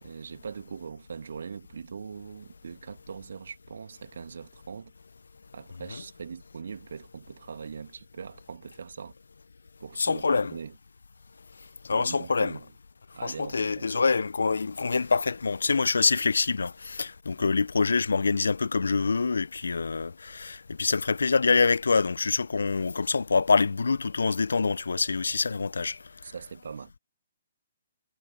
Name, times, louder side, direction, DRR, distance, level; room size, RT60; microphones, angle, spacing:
voice 1, 0.0-4.9 5.5-9.1 9.8-10.8 11.9-12.6 13.1-14.0 17.4-17.5 26.2-27.0, right 6 dB, 65° right, 2.5 m, -41 dB
voice 2, 10.0-10.5 11.9-12.6 13.2-26.0, left 4 dB, 70° left, 0.7 m, -25 dB
figure-of-eight pair, 130°, 0 cm